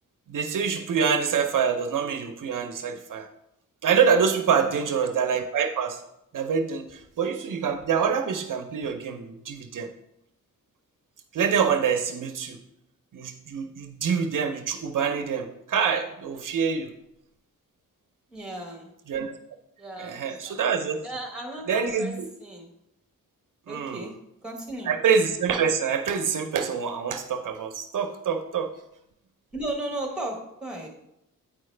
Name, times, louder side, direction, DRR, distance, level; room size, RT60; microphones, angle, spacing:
voice 1, 0.3-3.3 3.8-6.0 6.3-9.9 11.3-12.6 13.1-16.9 19.1-19.3 20.0-21.0 21.7-22.3 23.7-24.1 24.9-28.7, right 6 dB, 70° right, 7 dB, 0.6 m, -26 dB
voice 2, 4.5-4.8 18.3-18.9 19.8-20.6 21.0-22.7 23.7-24.1 24.4-24.9 29.5-30.9, right 1 dB, 5° right, 1 dB, 1.3 m, -35 dB
8.5 x 4.8 x 3.2 m, 0.82 s
wide cardioid pair, 130°, 33 cm